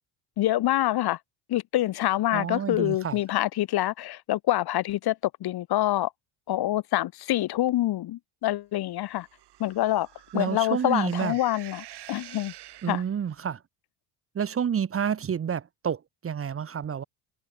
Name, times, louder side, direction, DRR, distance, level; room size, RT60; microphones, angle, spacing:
voice 1, 0.4-1.2 1.5-6.1 6.5-9.3 9.6-10.1 10.3-12.5 12.9-13.0, left 14 dB, 50° left, 1.6 m, -26 dB
voice 2, 2.3-3.2 10.3-11.3 12.8-13.6 14.3-17.0, right 8 dB, 30° right, 1.3 m, -29 dB
sound 1, 9.1-13.4, right 14 dB, 55° right, 4.0 m, -48 dB
cardioid pair, 115°, 47 cm